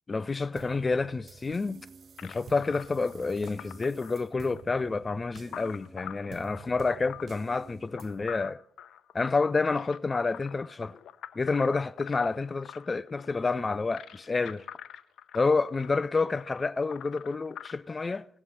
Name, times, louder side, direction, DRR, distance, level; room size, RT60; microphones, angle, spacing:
voice 1, 0.1-1.8 2.2-8.6 9.1-11.0 11.4-14.7 15.3-18.3, left 4 dB, 25° left, 0.4 m, -29 dB
sound 1, 0.6-8.2, right 6 dB, 50° right, 0.5 m, -50 dB
sound 2, 2.2-17.7, left 10 dB, 70° left, 0.7 m, -46 dB
18.5 x 7.2 x 4.2 m
cardioid pair, 90°, 0 cm